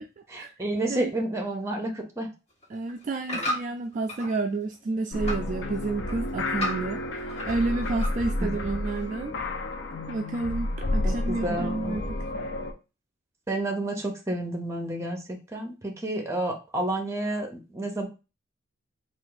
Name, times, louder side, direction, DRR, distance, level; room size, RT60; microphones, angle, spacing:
voice 1, 0.3-2.3 3.3-3.4 8.4-8.7 11.0-12.0 13.5-18.1, right 1 dB, 15° right, 3 dB, 0.8 m, -30 dB
sound 1, 2.5-4.3 4.7-5.5 5.8-7.6 7.8-8.4 8.9-9.0, equal, 30° left, 1.9 m, -34 dB
voice 2, 2.7-9.3 10.1-12.0, right 3 dB, 40° right, 4 dB, 0.3 m, -30 dB
sound 2, 5.1-12.7, left 2 dB, 60° left, 0.6 m, -31 dB
3.4 x 2.5 x 3.9 m, 0.30 s
head